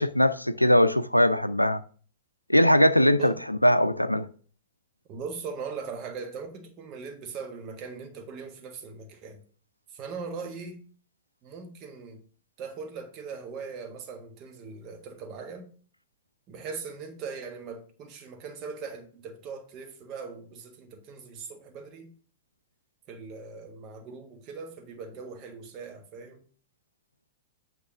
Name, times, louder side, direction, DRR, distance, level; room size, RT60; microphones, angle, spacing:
voice 1, 0.0-1.8 2.5-3.3 3.6-4.3, equal, 90° left, 0.4 m, -20 dB
voice 2, 5.1-9.4 9.9-10.8 11.4-12.2 12.6-15.7 16.5-22.1 23.1-26.4, right 5 dB, 35° right, 1.4 m, -40 dB
8.5 x 3.0 x 5.9 m
figure-of-eight pair, 100°, 0 cm